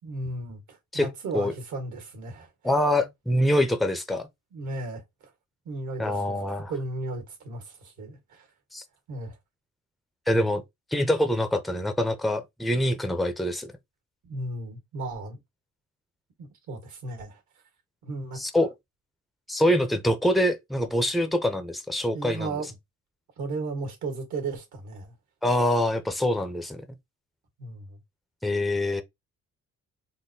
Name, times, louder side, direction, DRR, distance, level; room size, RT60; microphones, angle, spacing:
voice 1, 0.0-2.8 4.5-5.0 5.6-6.4 6.7-8.5 9.1-9.4 14.2-15.4 16.4-17.4 18.0-18.4 22.1-22.7 23.4-25.1 27.6-28.0, right 2 dB, 70° right, 1.5 m, -35 dB
voice 2, 2.6-4.3 6.0-6.7 8.7-8.8 10.3-10.6 10.9-13.7 18.4-18.7 19.5-22.6 25.4-26.8 28.4-29.0, left 1 dB, ahead, 0.5 m, -25 dB
3.7 x 2.2 x 2.7 m
cardioid pair, 90°, 30 cm